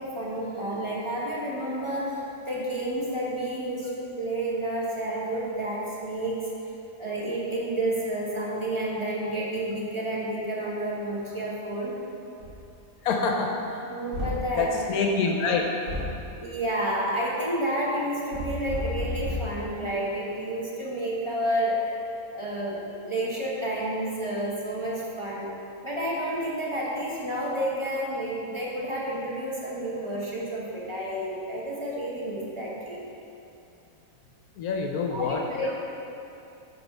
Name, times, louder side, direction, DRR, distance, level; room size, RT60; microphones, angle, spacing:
voice 1, 0.0-6.5 7.0-12.0 13.9-14.7 16.4-21.9 22.3-25.5 25.8-33.0 35.1-35.7, right 1 dB, 25° right, -5 dB, 0.7 m, -30 dB
sound 1, 12.4-12.6 14.1-14.5 15.9-16.2 18.3-19.6, left 1 dB, 55° right, 1.7 m, -32 dB
voice 2, 13.0-13.8 14.6-15.6 34.6-35.7, left 4 dB, 70° left, 2 dB, 1.0 m, -26 dB
7.6 x 3.4 x 5.3 m, 2.7 s
omnidirectional pair, 1.7 m